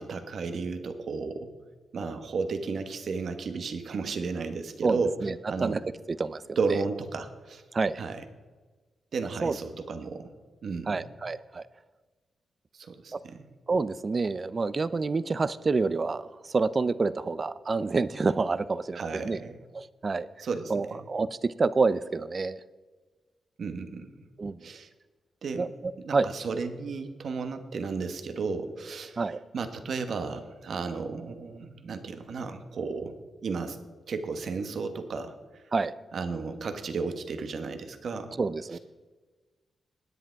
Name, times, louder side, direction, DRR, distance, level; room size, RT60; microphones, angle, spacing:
voice 1, 0.0-1.5 1.9-5.1 5.5-5.8 6.6-7.6 8.0-8.2 9.1-10.3 10.6-11.0 12.7-13.5 19.0-19.6 20.4-21.1 23.6-24.3 24.6-24.9 25.4-25.7 26.0-29.2 29.5-33.1 33.4-33.8 34.1-35.3 36.1-38.4 38.7-38.8, right 4 dB, 65° right, 8 dB, 1.4 m, -33 dB
voice 2, 4.8-6.6 7.7-8.0 9.4-9.6 10.9-11.7 13.1-13.2 13.7-19.4 19.7-20.3 20.7-22.6 24.4-24.7 25.6-26.3 29.2-29.4 35.7-35.9 38.4-38.8, right 4 dB, 40° right, 16 dB, 0.6 m, -28 dB
16.5 x 10.0 x 4.7 m, 1.3 s
cardioid pair, 80°, 0 cm